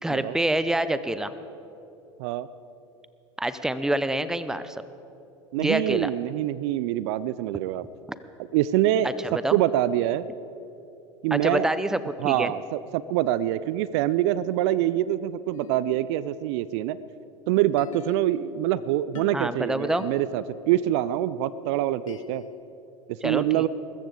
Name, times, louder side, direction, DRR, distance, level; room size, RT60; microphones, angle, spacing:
voice 1, 0.0-1.3 3.4-4.8 5.6-6.1 9.0-9.6 11.3-12.5 19.3-20.1 23.2-23.7, right 1 dB, 5° right, 13 dB, 0.6 m, -26 dB
voice 2, 5.5-7.8 8.5-9.1 9.5-10.3 11.2-11.7 12.2-17.0 17.5-22.4 23.1-23.7, right 13 dB, 60° right, 17 dB, 0.5 m, -25 dB
sound 1, 15.5-17.3 17.8-22.6, left 8 dB, 85° left, 0.6 m, -44 dB
22.0 x 14.0 x 3.9 m, 2.9 s
hypercardioid pair, 85°, 16 cm